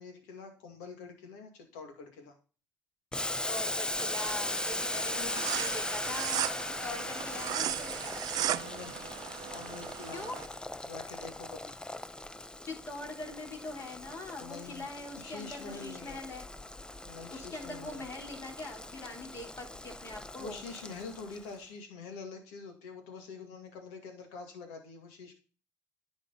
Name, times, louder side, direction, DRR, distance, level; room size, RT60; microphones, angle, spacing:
voice 1, 0.0-2.4 8.6-9.2 9.4-10.5 10.9-11.8 14.4-14.9 15.2-16.2 17.0-18.1 20.4-25.4, left 4 dB, 85° left, 5 dB, 2.1 m, -46 dB
Boiling, 3.1-21.5, left 2 dB, 10° left, 0.6 m, -39 dB
voice 2, 3.3-8.3 10.1-10.4 12.6-16.4 17.3-20.7, left 2 dB, 40° left, 2 dB, 3.4 m, -43 dB
sound 1, 4.0-10.5, right 12 dB, 65° right, 0.6 m, -37 dB
10.5 x 5.2 x 4.0 m, 0.36 s
supercardioid pair, 65°, 7 cm